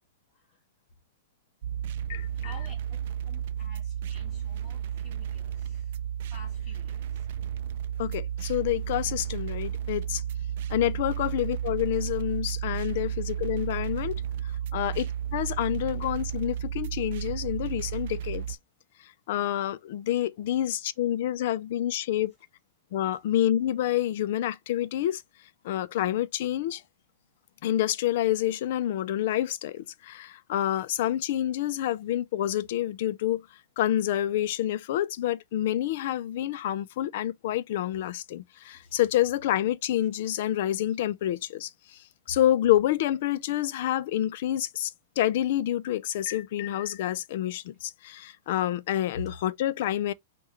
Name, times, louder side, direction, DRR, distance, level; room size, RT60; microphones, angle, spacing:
voice 1, 0.3-0.6 2.3-7.3 38.7-39.0 49.1-49.2, left 1 dB, 20° left, 2.4 m, -49 dB
sound 1, 1.6-18.6, right 9 dB, 55° right, 0.4 m, -33 dB
voice 2, 8.0-10.2 10.7-14.2 14.7-18.6 19.3-22.3 22.9-25.2 25.6-26.8 27.6-33.4 33.8-41.7 42.3-44.9 45.2-50.1, left 12 dB, 50° left, 0.4 m, -28 dB
5.5 x 2.3 x 3.0 m
supercardioid pair, 165°, 0 cm